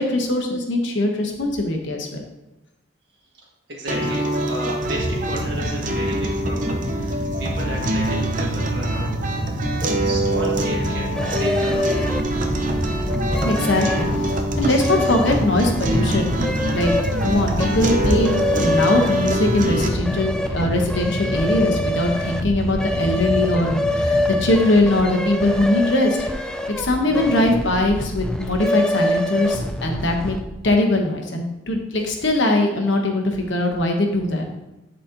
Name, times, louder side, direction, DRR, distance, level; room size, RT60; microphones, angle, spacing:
voice 1, 0.0-2.2 13.3-16.3 16.7-30.4 30.6-34.6, left 1 dB, 60° left, 2 dB, 1.1 m, -21 dB
voice 2, 3.3-9.7 10.0-12.5 12.8-14.2 14.7-15.5 16.4-16.5 22.5-22.6 24.8-25.1 27.1-27.9 29.3-29.4, equal, 55° right, -3 dB, 1.8 m, -34 dB
sound 1, 3.9-19.9, right 1 dB, 40° right, 0.7 m, -25 dB
sound 2, 4.8-24.5, equal, 30° left, 1.6 m, -28 dB
sound 3, 11.1-30.6, left 1 dB, 5° left, 0.3 m, -26 dB
11.5 x 4.2 x 2.9 m, 0.98 s
head